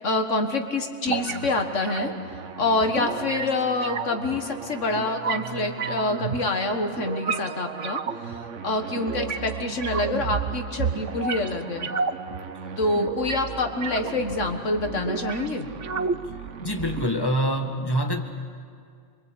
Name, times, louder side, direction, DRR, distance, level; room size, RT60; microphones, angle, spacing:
voice 1, 0.0-11.9 12.8-15.7, left 2 dB, 80° left, 5 dB, 2.0 m, -27 dB
sound 1, 1.1-17.1, right 6 dB, 75° right, 1.2 m, -32 dB
voice 2, 16.6-18.2, equal, 20° left, 3 dB, 2.0 m, -25 dB
27.0 x 24.0 x 8.4 m, 2.2 s
omnidirectional pair, 1.3 m